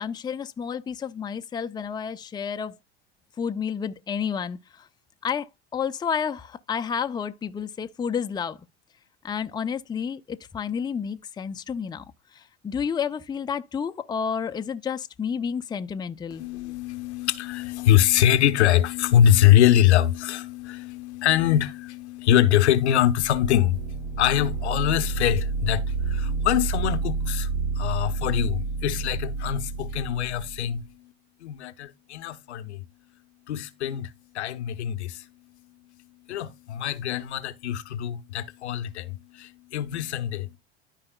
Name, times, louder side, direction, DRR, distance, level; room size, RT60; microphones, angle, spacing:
voice 1, 0.0-2.8 3.4-4.9 5.2-8.6 9.2-12.0 12.3-16.4, left 7 dB, 15° left, 0.5 m, -30 dB
voice 2, 16.4-31.1 31.4-32.8 33.5-35.3 36.3-40.6, left 11 dB, 80° left, 0.8 m, -23 dB
sound 1, 23.0-30.8, right 4 dB, 80° right, 0.9 m, -29 dB
13.0 x 4.9 x 2.3 m
hypercardioid pair, 80°, 33 cm